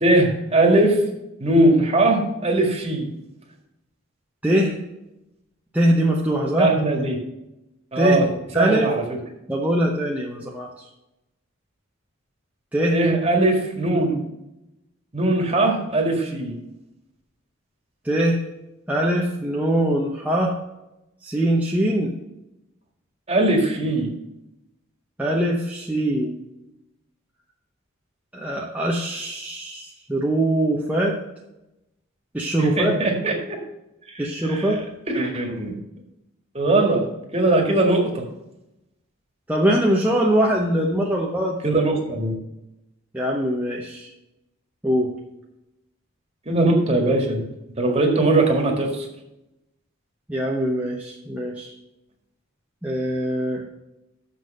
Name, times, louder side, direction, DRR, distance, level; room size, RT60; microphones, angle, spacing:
voice 1, 0.0-1.0 1.4-3.1 6.6-7.2 7.9-8.3 8.5-9.0 12.9-14.2 15.1-16.6 23.3-24.1 32.6-33.6 34.1-34.7 35.1-35.7 36.5-37.0 37.3-38.2 41.6-42.4 46.5-47.4 47.8-49.1, right 2 dB, 30° right, 2 dB, 1.8 m, -20 dB
voice 2, 4.4-4.8 5.7-6.7 8.0-8.2 8.5-8.9 9.5-10.7 12.7-13.0 18.0-18.4 18.9-20.5 21.2-22.1 25.2-26.3 28.3-31.2 32.3-33.0 34.2-34.8 39.5-41.8 43.1-44.1 44.8-45.1 50.3-51.7 52.8-53.6, right 1 dB, 5° right, -3 dB, 0.9 m, -22 dB
7.0 x 6.3 x 6.5 m, 0.92 s
head